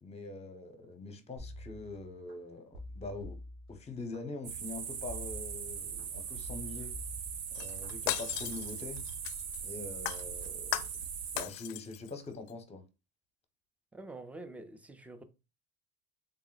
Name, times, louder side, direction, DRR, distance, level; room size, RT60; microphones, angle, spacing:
voice 1, 0.0-3.4 3.7-6.9 7.5-9.0 9.6-10.9 11.3-12.8, left 3 dB, 20° left, 0.9 m, -44 dB
sound 1, 1.4-2.3 2.7-4.2 5.0-6.0 6.4-7.9 8.3-8.7, left 1 dB, 75° right, 1.8 m, -47 dB
sound 2, 4.4-11.4, right 7 dB, 55° right, 0.8 m, -40 dB
Shatter, 7.5-9.7 10.1-11.1 11.4-12.1 12.5-12.6, left 15 dB, 80° left, 0.5 m, -37 dB
voice 2, 13.9-15.2, right 2 dB, 5° right, 0.5 m, -46 dB
3.8 x 2.0 x 3.9 m
supercardioid pair, 100°, 31 cm